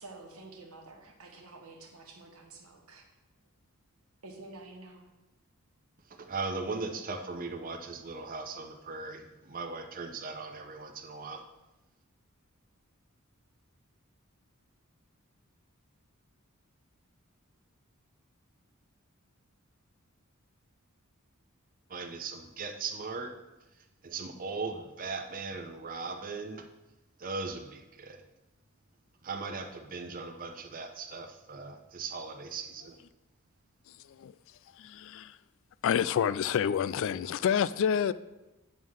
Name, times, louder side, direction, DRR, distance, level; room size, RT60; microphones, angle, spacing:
voice 1, 0.0-3.0 4.2-5.1, right 2 dB, 80° right, 1 dB, 1.5 m, -49 dB
voice 2, 6.1-11.4 21.9-23.3 24.0-26.7 27.2-28.2 29.2-33.0, right 4 dB, 40° right, 4 dB, 0.7 m, -38 dB
voice 3, 34.8-35.4 35.8-38.1, left 8 dB, 65° left, 17 dB, 0.3 m, -28 dB
9.2 x 3.7 x 6.3 m, 1.0 s
head